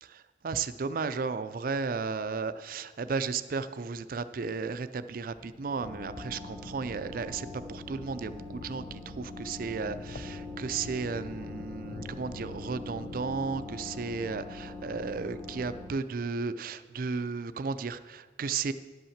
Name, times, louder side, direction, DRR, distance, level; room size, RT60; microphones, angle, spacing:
voice 1, 0.0-18.7, right 4 dB, 50° right, 12 dB, 0.4 m, -34 dB
sound 1, 5.2-14.5, left 2 dB, 50° left, 0.6 m, -50 dB
sound 2, 5.8-15.9, left 2 dB, 15° left, 0.9 m, -42 dB
11.0 x 5.6 x 7.2 m, 1.4 s
head